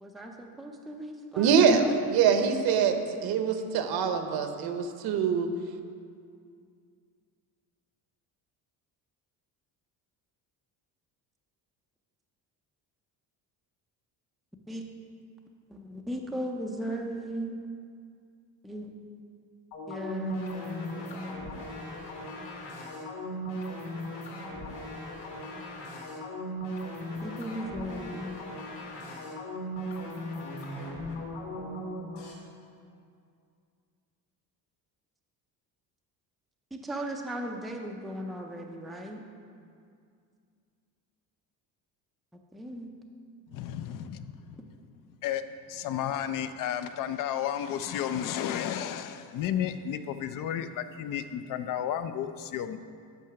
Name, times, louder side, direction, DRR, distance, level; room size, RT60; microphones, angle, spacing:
voice 1, 0.0-1.9 14.7-14.8 15.7-17.6 18.6-18.9 19.9-21.5 27.2-28.5 36.7-39.2 42.5-42.9, equal, ahead, 1 dB, 0.4 m, -37 dB
voice 2, 1.4-1.8 2.1-5.5, right 7 dB, 65° right, 7 dB, 0.9 m, -24 dB
sound 1, 19.7-32.3, equal, 80° left, 2.4 m, -38 dB
voice 3, 43.5-44.6 45.2-45.4 45.7-52.8, left 10 dB, 55° left, 10 dB, 0.5 m, -32 dB
9.2 x 5.7 x 5.8 m, 2.3 s
cardioid pair, 160°, 39 cm